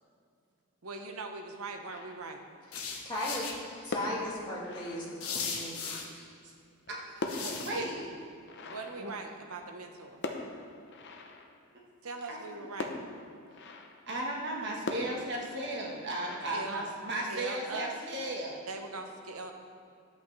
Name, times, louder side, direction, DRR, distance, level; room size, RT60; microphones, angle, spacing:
voice 1, 0.8-2.4 7.7-8.2 8.6-10.2 12.0-13.0 16.5-16.8 17.3-17.9 18.7-19.5, right 3 dB, 75° right, 4 dB, 0.8 m, -41 dB
sound 1, 1.9-2.6 3.7-5.6 6.6-9.8 10.2-11.8 12.8-14.2 14.9-17.4, left 2 dB, 50° left, 0.7 m, -42 dB
sound 2, 2.7-3.5 5.2-6.0 7.3-7.8, left 5 dB, 80° left, 1.1 m, -37 dB
voice 2, 3.0-3.4 3.8-5.8 6.1-6.2, left 1 dB, 20° left, -6 dB, 2.0 m, -36 dB
voice 3, 6.9-8.1 8.9-9.1 12.3-12.7 14.1-18.6, right 1 dB, 50° right, -2 dB, 1.3 m, -36 dB
11.0 x 8.2 x 3.2 m, 2.5 s
head